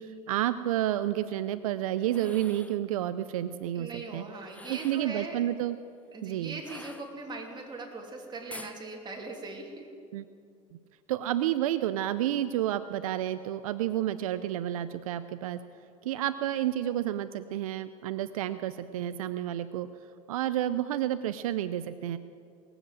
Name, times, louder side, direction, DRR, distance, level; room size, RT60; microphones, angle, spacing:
voice 1, 0.0-4.2 4.7-5.8 6.2-6.6 10.1-10.2 11.1-15.6 16.0-19.9 20.3-22.2, right 12 dB, 85° right, 13 dB, 0.5 m, -30 dB
sound 1, 2.0-2.8 4.4-5.2 6.6-7.5 8.5-8.8, left 2 dB, 10° left, 0.8 m, -47 dB
voice 2, 3.7-5.4 6.1-9.9, right 3 dB, 25° right, 1 dB, 3.0 m, -40 dB
19.5 x 7.9 x 7.7 m, 2.4 s
hypercardioid pair, 90°, 18 cm